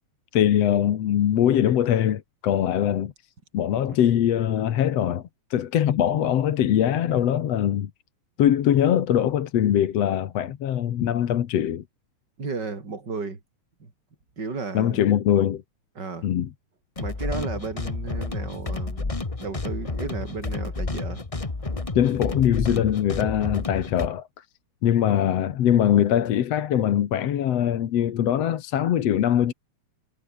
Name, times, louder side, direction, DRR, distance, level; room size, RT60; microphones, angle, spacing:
voice 1, 0.3-3.1 3.5-5.2 5.5-7.9 8.4-11.8 14.7-15.6 16.2-16.5 21.9-24.3 24.8-29.5, left 10 dB, 60° left, 2.3 m, -22 dB
voice 2, 12.4-13.4 13.8-13.9 14.4-15.0 16.0-16.3 17.0-21.2, right 4 dB, 35° right, 4.7 m, -34 dB
sound 1, 17.0-24.1, left 3 dB, 35° left, 0.5 m, -30 dB
omnidirectional pair, 3.4 m